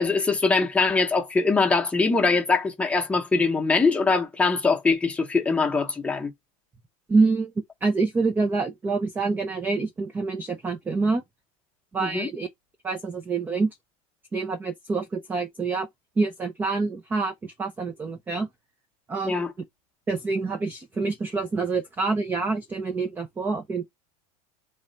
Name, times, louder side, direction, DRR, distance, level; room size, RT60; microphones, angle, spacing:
voice 1, 0.0-6.3 12.0-12.3 19.2-19.5, left 4 dB, 5° left, 0.8 m, -22 dB
voice 2, 7.1-7.5 7.8-11.2 11.9-12.5 12.8-13.7 14.3-15.9 16.2-18.5 19.1-19.4 20.1-23.8, right 4 dB, 10° right, 0.4 m, -26 dB
3.2 x 2.4 x 4.0 m
supercardioid pair, 150°, 19 cm